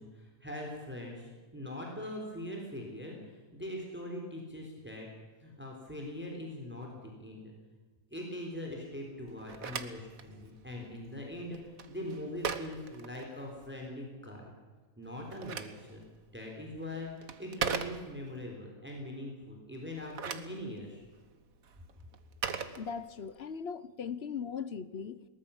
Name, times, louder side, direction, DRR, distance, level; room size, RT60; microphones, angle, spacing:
voice 1, 0.0-5.1 5.4-7.5 8.1-14.5 15.0-16.0 16.3-21.0, left 1 dB, 5° right, 0 dB, 3.9 m, -42 dB
Telephone, 9.3-13.8 15.0-18.4 19.9-23.5, right 6 dB, 75° right, 1.7 m, -41 dB
voice 2, 22.8-25.2, left 6 dB, 50° left, 15 dB, 1.0 m, -39 dB
22.0 x 19.0 x 7.2 m, 1.4 s
omnidirectional pair, 1.5 m